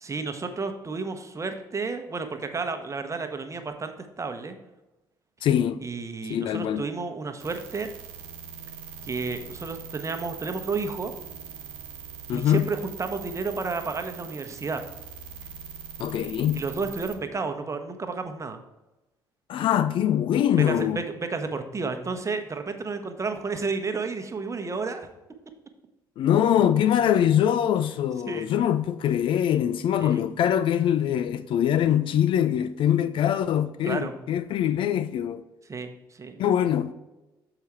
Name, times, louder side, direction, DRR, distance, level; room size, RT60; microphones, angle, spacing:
voice 1, 0.0-4.6 5.8-7.9 9.0-11.1 12.3-14.8 16.5-18.6 20.6-25.1 28.3-28.5 30.0-30.2 33.8-34.1 35.7-36.4, right 4 dB, 30° right, 0.9 m, -31 dB
voice 2, 5.4-5.8 6.3-6.9 12.3-12.7 16.0-16.6 19.5-21.0 26.2-35.4 36.4-36.9, left 10 dB, 50° left, 0.4 m, -23 dB
sound 1, 7.4-17.2, right 7 dB, 65° right, 0.8 m, -42 dB
6.9 x 4.9 x 4.4 m
figure-of-eight pair, 45°, 11 cm